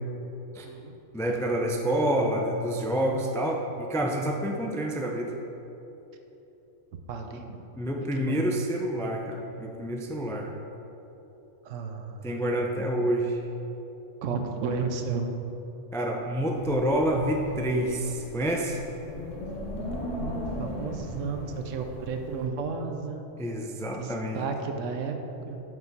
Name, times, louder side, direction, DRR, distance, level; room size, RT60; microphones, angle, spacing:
voice 1, 0.6-1.0 7.1-7.6 8.2-8.4 11.6-12.4 14.2-15.3 20.2-23.3 23.9-25.6, right 5 dB, 80° right, 5 dB, 1.1 m, -33 dB
voice 2, 1.1-5.3 7.3-7.4 7.8-10.5 12.2-13.4 15.9-18.8 23.4-24.5, right 1 dB, 5° left, 1 dB, 0.3 m, -28 dB
Wind, 16.5-22.5, left 1 dB, 80° left, 1.4 m, -37 dB
7.3 x 5.6 x 6.0 m, 3.0 s
omnidirectional pair, 1.3 m